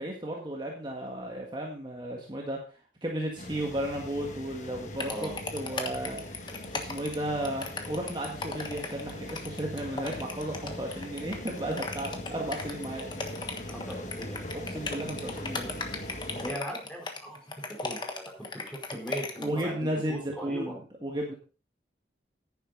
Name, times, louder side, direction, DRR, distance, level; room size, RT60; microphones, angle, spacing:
voice 1, 0.0-2.6 3.0-6.2 6.7-13.1 14.6-15.7 19.4-21.3, right 1 dB, 25° right, -1 dB, 1.7 m, -34 dB
sound 1, 3.4-16.5, left 1 dB, 40° left, 1.7 m, -41 dB
sound 2, 5.0-19.6, left 3 dB, 25° left, 1.3 m, -37 dB
voice 2, 13.6-14.4 16.4-17.4 17.8-19.8 20.1-20.7, equal, 5° left, 0 dB, 3.7 m, -39 dB
10.5 x 10.0 x 3.9 m, 0.36 s
head